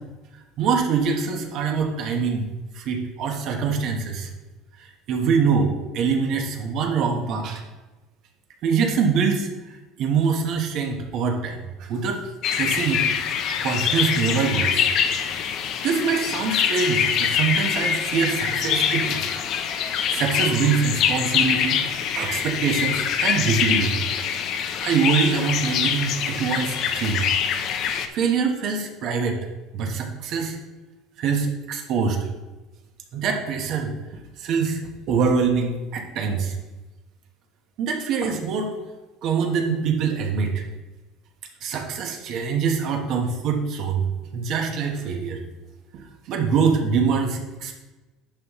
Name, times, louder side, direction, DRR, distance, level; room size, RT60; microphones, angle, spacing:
voice 1, 0.6-2.5 2.7-4.3 4.8-7.6 8.6-12.2 12.5-13.0 13.6-14.9 15.8-19.2 20.1-24.0 24.8-27.2 28.1-29.4 29.7-30.6 31.2-32.3 33.1-33.9 34.4-34.8 35.1-36.5 37.8-38.7 39.2-40.6 41.6-44.0 44.3-45.4 45.9-47.8, right 5 dB, 50° right, 3 dB, 1.2 m, -24 dB
sound 1, 12.4-28.1, left 8 dB, 50° left, 0.7 m, -24 dB
10.5 x 5.6 x 3.1 m, 1.2 s
cardioid pair, 135°, 0 cm